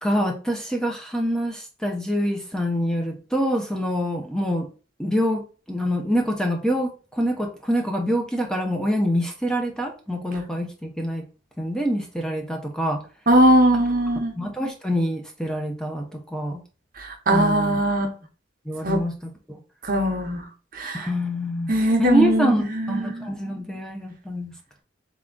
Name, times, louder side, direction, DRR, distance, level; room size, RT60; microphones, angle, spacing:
voice 1, 0.0-4.7 5.0-11.2 11.6-13.0 14.4-16.6 17.3-17.8 18.7-19.2 19.5-19.6 20.9-24.5, equal, 5° left, 2 dB, 0.6 m, -25 dB
voice 2, 13.3-14.3 17.0-18.1 18.8-19.0 19.8-20.4 20.7-21.1 21.7-23.3, right 1 dB, 50° right, 3 dB, 1.0 m, -20 dB
3.7 x 3.5 x 3.8 m, 0.36 s
head